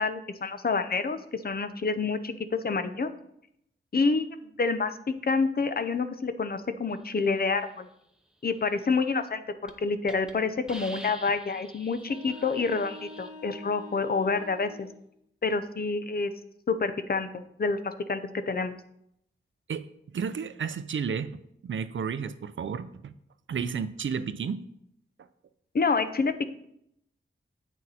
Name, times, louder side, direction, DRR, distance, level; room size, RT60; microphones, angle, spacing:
voice 1, 0.0-3.1 3.9-7.9 8.4-14.9 15.4-16.3 16.7-18.8 25.7-26.5, left 4 dB, 45° left, 10 dB, 0.6 m, -28 dB
Hiss, 9.1-9.3 9.7-9.8 10.1-10.3 10.7-13.3, right 1 dB, 5° right, 0.8 m, -46 dB
sound 1, 12.0-15.0, left 2 dB, 20° left, 1.4 m, -45 dB
voice 2, 20.1-23.1 23.5-24.6, right 6 dB, 65° right, 13 dB, 0.5 m, -32 dB
9.0 x 6.3 x 4.2 m, 0.75 s
wide cardioid pair, 120°, 21 cm